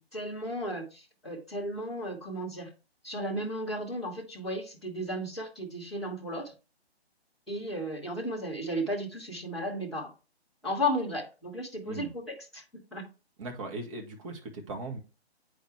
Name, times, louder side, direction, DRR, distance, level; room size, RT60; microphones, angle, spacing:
voice 1, 0.1-2.7 3.0-6.5 7.5-10.1 10.6-12.6 12.9-13.0, equal, ahead, 0.4 m, -34 dB
voice 2, 13.4-15.0, right 2 dB, 30° right, 1.4 m, -38 dB
8.5 x 4.7 x 3.2 m
figure-of-eight pair, 135°, 32 cm